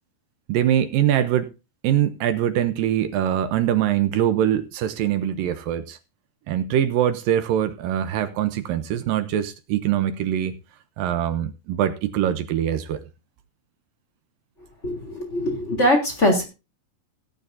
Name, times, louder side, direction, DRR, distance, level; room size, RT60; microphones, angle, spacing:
voice 1, 0.5-1.5 1.8-6.0 6.5-10.6 11.0-13.0, right 11 dB, 80° right, 2.5 m, -23 dB
voice 2, 14.8-16.4, left 1 dB, 20° left, 3.4 m, -21 dB
17.0 x 10.5 x 2.7 m
omnidirectional pair, 4.2 m